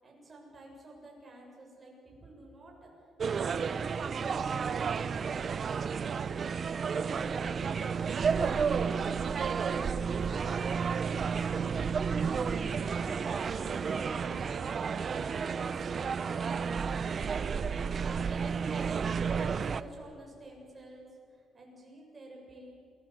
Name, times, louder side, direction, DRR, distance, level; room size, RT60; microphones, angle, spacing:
voice 1, 0.0-2.9 3.2-6.5 7.0-10.9 11.4-15.0 15.4-17.8 18.0-21.1 21.5-22.8, right 1 dB, 25° right, -1 dB, 7.3 m, -52 dB
sound 1, 3.2-19.8, right 6 dB, 40° right, 0.7 m, -31 dB
27.5 x 20.0 x 8.2 m, 2.5 s
cardioid pair, 130°, 0 cm